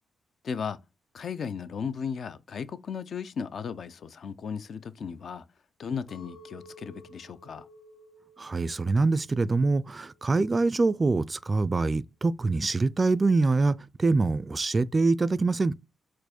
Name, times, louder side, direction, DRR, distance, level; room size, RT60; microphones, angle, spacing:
voice 1, 0.4-0.8 1.1-5.4 5.8-7.7, left 6 dB, 65° left, 0.5 m, -35 dB
Chink clink, 6.1-10.4 10.8-11.4, right 1 dB, 35° left, 1.3 m, -54 dB
voice 2, 8.4-15.7, right 3 dB, 30° right, 0.4 m, -24 dB
4.5 x 2.5 x 4.2 m
cardioid pair, 80°, 0 cm